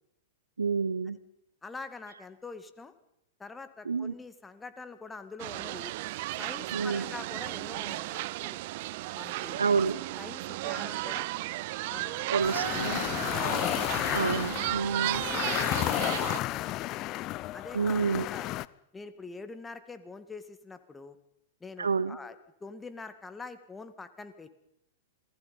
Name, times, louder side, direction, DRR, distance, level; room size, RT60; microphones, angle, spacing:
voice 1, 0.6-1.2 3.9-4.1 6.7-7.0 9.6-10.0 12.3-13.0 14.1-15.2 17.7-18.3 21.8-22.2, right 5 dB, 85° right, 15 dB, 1.1 m, -28 dB
voice 2, 1.6-2.9 3.4-5.9 6.3-8.6 9.1-9.6 10.2-11.3 11.9-12.4 12.8-13.3 15.4-17.1 17.5-18.6 18.9-21.2 21.6-24.5, left 4 dB, 10° left, 11 dB, 2.3 m, -45 dB
sound 1, 5.4-16.4, right 19 dB, 55° right, 0.7 m, -34 dB
sound 2, 12.4-18.7, left 16 dB, 40° left, 0.7 m, -32 dB
27.5 x 19.0 x 5.5 m, 0.82 s
hypercardioid pair, 105°, 0 cm